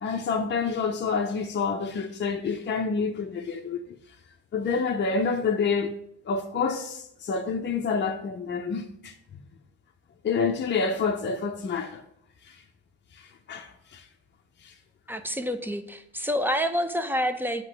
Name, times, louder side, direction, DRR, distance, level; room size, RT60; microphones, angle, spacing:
voice 1, 0.0-3.8 4.5-5.9 6.2-9.1 10.2-12.0 12.5-12.6 13.1-14.1 14.6-14.7, left 5 dB, 35° left, 0.7 m, -28 dB
voice 2, 15.1-17.6, equal, 5° right, 0.6 m, -28 dB
8.0 x 3.0 x 6.2 m
cardioid pair, 90°, 30 cm